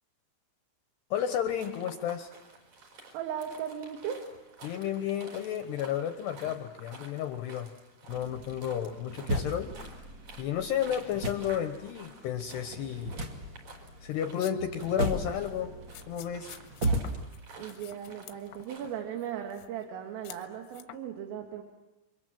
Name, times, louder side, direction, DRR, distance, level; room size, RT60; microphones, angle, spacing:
voice 1, 1.1-2.3 4.6-7.7 8.1-9.7 10.4-13.2 14.0-15.7 16.1-16.6, left 9 dB, 70° left, 7 dB, 2.7 m, -32 dB
sound 1, 1.1-19.0, right 3 dB, 35° right, 5.2 m, -52 dB
voice 2, 3.1-4.3 17.6-21.6, right 9 dB, 75° right, 3 dB, 4.6 m, -37 dB
sound 2, 8.1-17.2, right 1 dB, 60° right, 1.2 m, -36 dB
sound 3, 14.1-14.9 15.1-15.3 15.9-18.9 19.2-19.9 20.2-21.0, left 14 dB, 90° left, 3.9 m, -49 dB
29.0 x 24.5 x 7.6 m, 1.0 s
omnidirectional pair, 6.0 m